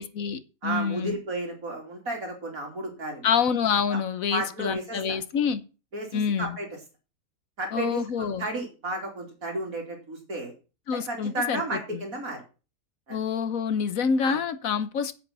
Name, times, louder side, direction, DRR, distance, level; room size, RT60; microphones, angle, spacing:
voice 1, 0.0-1.1 3.2-5.6 6.1-6.6 7.7-8.5 10.9-12.0 13.1-15.2, left 6 dB, 70° left, 1.3 m, -27 dB
voice 2, 0.6-3.3 3.9-4.0 4.3-5.2 5.9-6.7 7.6-10.5 10.9-12.4 13.1-13.2 14.2-14.4, right 2 dB, 70° right, 3.7 m, -33 dB
8.4 x 8.4 x 5.5 m
omnidirectional pair, 1.5 m